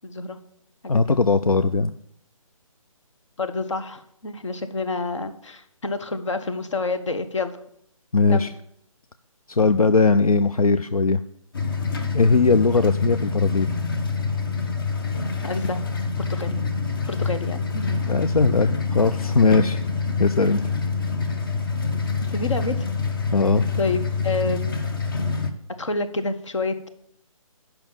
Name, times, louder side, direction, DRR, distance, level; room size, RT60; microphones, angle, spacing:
voice 1, 0.0-0.4 0.8-1.2 3.4-7.6 8.3-8.5 15.4-15.8 16.3-16.5 17.1-18.0 22.3-22.9 23.8-24.9 25.8-26.9, left 3 dB, 55° left, 9 dB, 1.2 m, -28 dB
voice 2, 0.9-1.9 8.1-8.5 9.5-11.2 12.1-13.7 18.1-19.8 20.2-20.6 23.3-23.6, left 4 dB, 80° left, 10 dB, 0.5 m, -19 dB
sound 1, 11.5-25.5, left 4 dB, 35° left, 1.0 m, -26 dB
8.6 x 5.9 x 7.3 m, 0.71 s
figure-of-eight pair, 145°, 18 cm